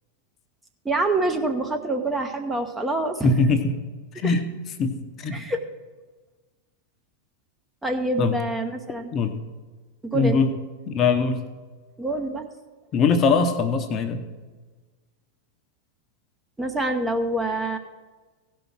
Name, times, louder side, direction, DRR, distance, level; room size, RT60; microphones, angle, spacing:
voice 1, 0.8-3.3 4.2-4.3 5.3-5.6 7.8-9.1 10.0-10.4 12.0-12.5 16.6-17.8, right 2 dB, 10° right, 4 dB, 0.8 m, -26 dB
voice 2, 3.2-3.7 4.1-4.4 4.8-5.4 8.2-8.4 9.1-9.4 10.1-10.6 10.9-11.5 12.9-14.2, left 4 dB, 30° left, 7 dB, 0.9 m, -22 dB
16.0 x 5.4 x 6.1 m, 1.3 s
figure-of-eight pair, 90°, 0 cm